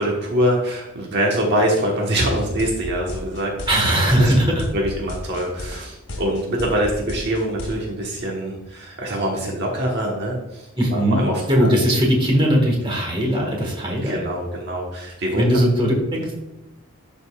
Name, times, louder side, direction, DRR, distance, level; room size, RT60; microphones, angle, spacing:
voice 1, 0.0-3.5 4.1-4.3 4.7-11.7 14.0-15.4, equal, 50° right, -1 dB, 1.3 m, -24 dB
sound 1, 2.4-7.7, left 2 dB, 75° left, 2.1 m, -33 dB
voice 2, 3.7-4.6 10.8-14.2 15.3-16.3, equal, 20° right, 0 dB, 1.5 m, -19 dB
11.5 x 5.3 x 2.4 m, 0.98 s
head